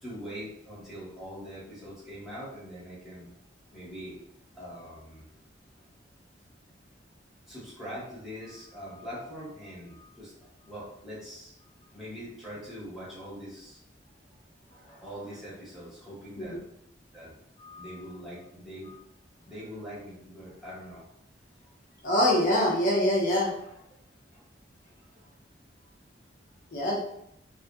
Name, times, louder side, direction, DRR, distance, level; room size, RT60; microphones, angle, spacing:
voice 1, 0.0-3.3 3.7-4.2 4.5-5.3 7.5-10.3 10.7-11.5 11.9-13.8 15.0-16.6 17.1-17.3 17.8-18.9 19.5-21.0, equal, 5° right, -9 dB, 1.0 m, -42 dB
voice 2, 22.0-23.5 26.7-27.0, left 1 dB, 50° left, -3 dB, 0.5 m, -24 dB
2.4 x 2.2 x 2.6 m, 0.77 s
head